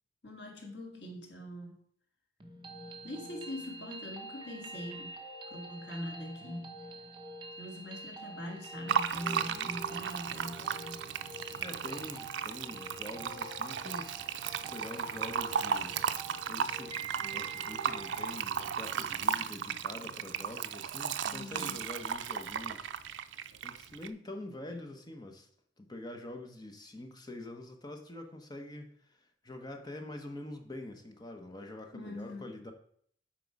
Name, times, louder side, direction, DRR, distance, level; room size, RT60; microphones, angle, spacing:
voice 1, 0.2-1.8 3.0-5.2 5.5-6.8 7.6-11.1 21.2-21.8 31.9-32.6, left 1 dB, 75° left, 1 dB, 1.9 m, -43 dB
sound 1, 2.4-18.4, right 2 dB, 25° right, 1.0 m, -46 dB
Fill (with liquid), 8.9-24.1, right 7 dB, 80° right, 0.4 m, -35 dB
voice 2, 9.3-9.8 11.6-16.0 16.5-22.9 23.6-25.5 25.8-29.2 29.4-32.7, left 1 dB, 25° left, 4 dB, 1.0 m, -45 dB
8.1 x 4.6 x 4.8 m, 0.63 s
head